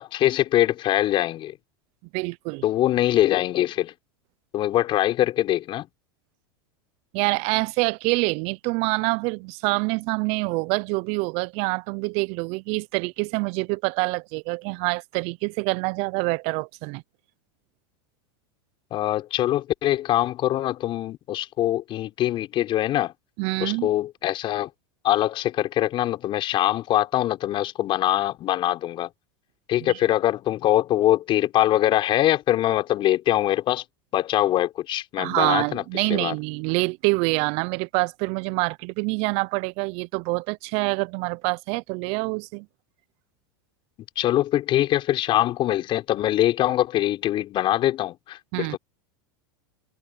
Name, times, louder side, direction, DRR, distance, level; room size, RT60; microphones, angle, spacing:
voice 1, 0.0-1.5 2.6-3.9 4.5-5.9 18.9-23.1 23.6-24.7 25.0-29.1 29.7-33.8 34.1-36.3 44.2-48.8, left 13 dB, 40° left, 4.2 m, -23 dB
voice 2, 2.1-2.6 7.1-17.0 23.4-23.9 29.8-30.0 35.2-42.7 48.5-48.8, right 27 dB, 55° right, 0.9 m, -26 dB
hypercardioid pair, 95°, 13 cm